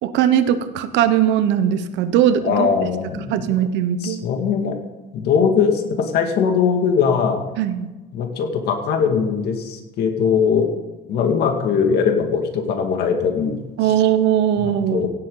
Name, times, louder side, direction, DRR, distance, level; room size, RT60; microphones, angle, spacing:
voice 1, 0.0-2.7 3.3-4.2 7.6-7.9 13.8-15.1, right 10 dB, 65° right, 11 dB, 1.1 m, -19 dB
voice 2, 2.4-3.6 4.0-4.8 5.1-7.5 8.1-10.7 11.1-13.9 14.6-15.1, left 6 dB, 55° left, 4 dB, 2.1 m, -20 dB
17.0 x 8.4 x 3.9 m, 1.1 s
cardioid pair, 150°, 20 cm